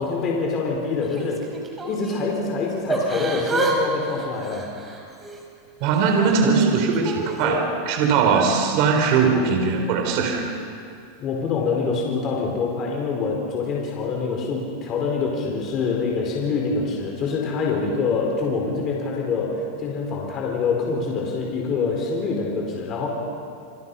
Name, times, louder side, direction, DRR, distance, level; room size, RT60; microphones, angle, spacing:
voice 1, 0.0-1.5 1.8-4.7 11.2-23.1, left 4 dB, 35° left, -1 dB, 4.7 m, -25 dB
Yell / Crying sobbing, 1.0-2.3 2.9-3.8 4.0-5.4 5.9-7.5 8.2-8.5, right 2 dB, 15° right, 4.7 m, -29 dB
voice 2, 5.8-10.5, right 5 dB, 55° right, 3 dB, 4.3 m, -20 dB
29.0 x 25.5 x 5.7 m, 2.5 s
supercardioid pair, 140°, 0 cm